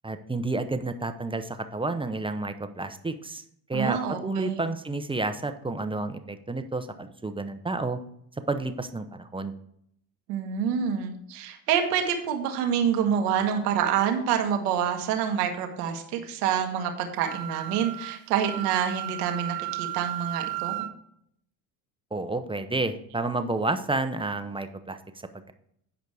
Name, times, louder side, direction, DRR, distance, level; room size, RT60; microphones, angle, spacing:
voice 1, 0.0-3.4 3.7-8.0 8.5-9.5 22.1-25.0, right 2 dB, 10° right, 8 dB, 0.7 m, -30 dB
voice 2, 3.7-4.6 10.3-20.7, right 8 dB, 90° right, 4 dB, 1.4 m, -27 dB
Wind instrument woodwind instrument, 17.2-20.9, right 17 dB, 70° right, 0.8 m, -34 dB
9.4 x 5.1 x 4.8 m, 0.70 s
supercardioid pair, 85°, 46 cm